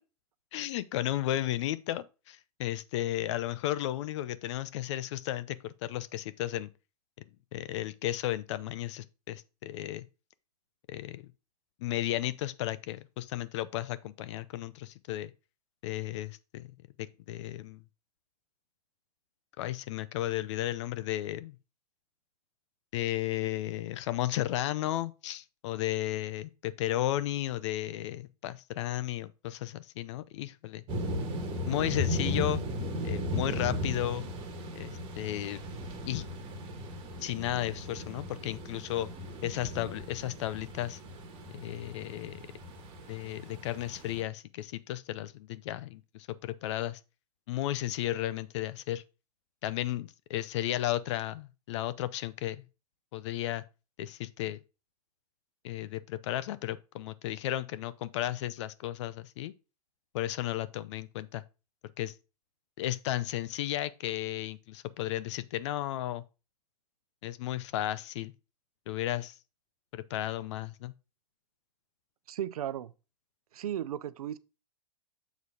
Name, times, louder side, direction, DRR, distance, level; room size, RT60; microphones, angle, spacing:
voice 1, 0.5-6.7 7.5-10.0 10.9-11.3 11.8-15.3 15.8-16.7 17.0-17.8 19.6-21.6 22.9-30.8 31.7-32.6 33.0-34.3 34.8-35.6 36.1-36.2 37.2-39.1 39.4-41.0 41.5-42.4 43.1-47.0 47.5-49.0 49.6-52.7 53.1-53.6 54.0-54.6 55.6-59.5 60.1-61.4 62.0-62.1 62.8-66.2 67.2-68.3 68.9-69.3 69.9-70.9, left 14 dB, 50° left, 0.6 m, -34 dB
sound 1, 30.9-44.2, left 1 dB, 25° right, 1.5 m, -36 dB
voice 2, 72.3-72.9 73.5-74.4, right 10 dB, 70° right, 0.6 m, -35 dB
7.2 x 4.1 x 4.8 m
hypercardioid pair, 130°, 19 cm